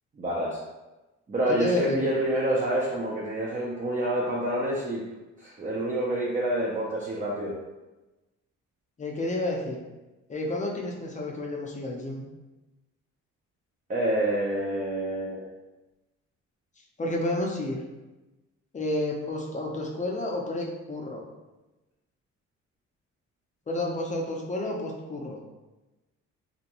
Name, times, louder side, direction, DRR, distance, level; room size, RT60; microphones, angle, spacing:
voice 1, 0.2-0.6 1.3-5.0 5.4-7.6 13.9-15.4, right 1 dB, 25° right, -5 dB, 0.5 m, -27 dB
voice 2, 1.5-2.0 9.0-9.8 10.3-12.2 17.0-17.8 18.7-21.3 23.7-25.4, left 1 dB, 25° left, 0 dB, 0.6 m, -30 dB
2.4 x 2.1 x 2.8 m, 1.1 s
cardioid pair, 90°, 30 cm